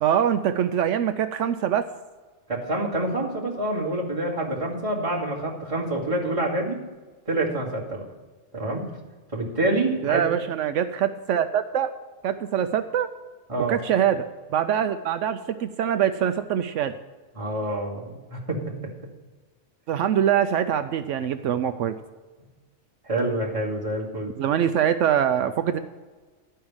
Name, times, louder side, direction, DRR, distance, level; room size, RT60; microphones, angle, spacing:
voice 1, 0.0-1.9 10.0-11.9 12.2-13.1 13.7-16.9 19.9-22.0 24.4-25.8, right 9 dB, 75° right, 10 dB, 0.9 m, -24 dB
voice 2, 2.5-6.8 7.3-8.0 8.5-8.8 9.3-10.2 13.5-13.8 17.3-18.6 23.0-24.3, right 2 dB, 25° right, -5 dB, 2.5 m, -27 dB
12.0 x 5.6 x 8.7 m, 1.3 s
omnidirectional pair, 1.3 m